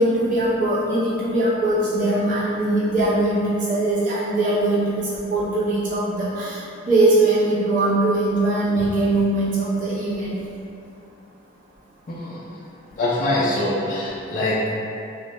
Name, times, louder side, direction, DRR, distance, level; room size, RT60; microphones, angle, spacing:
voice 1, 0.0-10.4, right 2 dB, 40° right, -9 dB, 0.6 m, -21 dB
voice 2, 12.1-12.6 13.0-14.7, left 1 dB, 40° left, -9 dB, 0.3 m, -24 dB
2.1 x 2.1 x 2.8 m, 2.6 s
head